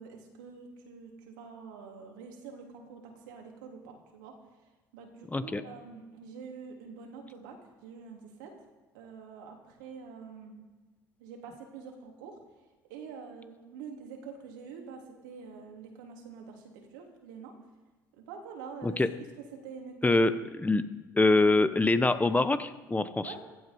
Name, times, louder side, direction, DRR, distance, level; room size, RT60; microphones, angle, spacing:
voice 1, 0.0-8.5 8.9-10.5 11.2-12.4 12.9-17.5 18.2-19.0 19.6-20.3 20.6-20.7 23.2-23.4, right 5 dB, 75° right, 1 dB, 3.3 m, -46 dB
voice 2, 20.0-20.3 20.6-20.9 21.1-23.3, left 2 dB, 15° left, 12 dB, 0.9 m, -24 dB
16.5 x 12.0 x 5.4 m, 1.2 s
hypercardioid pair, 65°, 10 cm